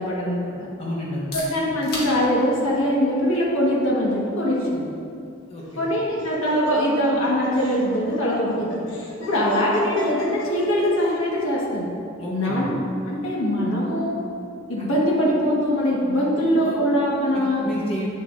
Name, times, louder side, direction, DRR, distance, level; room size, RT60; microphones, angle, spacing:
voice 1, 0.0-0.7 1.3-4.8 5.8-8.7 9.2-11.9 12.3-12.7 13.0-14.2 14.7-17.7, equal, 85° left, -5 dB, 1.6 m, -22 dB
voice 2, 0.8-1.3 5.5-5.8 12.2-12.6 14.8-14.9 16.5-16.8 17.3-18.1, equal, 30° left, -5 dB, 1.1 m, -31 dB
sound 1, 1.0-16.7, left 1 dB, 50° left, 1.9 m, -45 dB
Laughter, 5.6-11.0, left 2 dB, 65° left, 1.2 m, -35 dB
9.2 x 7.2 x 2.6 m, 2.4 s
head